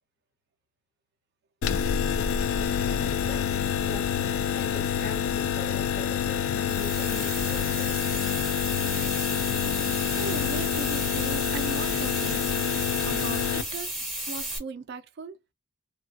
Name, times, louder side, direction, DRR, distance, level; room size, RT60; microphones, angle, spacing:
sound 1, 1.6-13.6, left 8 dB, 70° left, 0.3 m, -27 dB
voice 1, 2.6-8.1, left 2 dB, 45° left, 1.1 m, -42 dB
sound 2, 6.6-14.6, right 1 dB, ahead, 0.9 m, -34 dB
voice 2, 9.9-12.5 13.0-15.4, right 4 dB, 50° right, 0.4 m, -38 dB
3.1 x 2.2 x 2.7 m
head